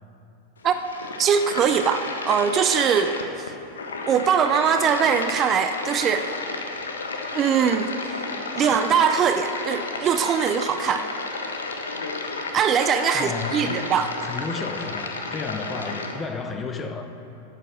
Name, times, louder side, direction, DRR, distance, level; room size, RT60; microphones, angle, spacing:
sound 1, 0.6-16.2, left 3 dB, 70° left, 0.9 m, -32 dB
voice 1, 1.2-3.5 4.1-6.3 7.3-7.9 8.1-8.2 8.5-11.1 12.5-14.1, right 7 dB, 30° right, 9 dB, 0.4 m, -22 dB
voice 2, 13.1-13.9 14.2-17.1, left 4 dB, 20° left, 7 dB, 0.8 m, -32 dB
11.0 x 7.7 x 6.2 m, 2.8 s
figure-of-eight pair, 90°, 0 cm